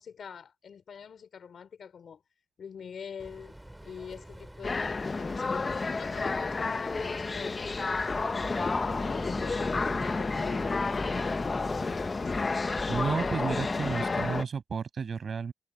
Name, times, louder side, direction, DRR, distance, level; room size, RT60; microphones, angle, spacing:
voice 1, 0.0-2.2 2.6-3.6 3.8-8.0 8.5-12.4 14.0-14.4, left 7 dB, 60° left, 4.4 m, -45 dB
Boat Water vehicle, 3.2-14.0, right 1 dB, 5° right, 3.8 m, -43 dB
sound 1, 4.6-14.4, left 3 dB, 30° left, 0.6 m, -30 dB
voice 2, 12.9-15.5, right 6 dB, 50° right, 7.2 m, -32 dB
wide cardioid pair, 140°, 0 cm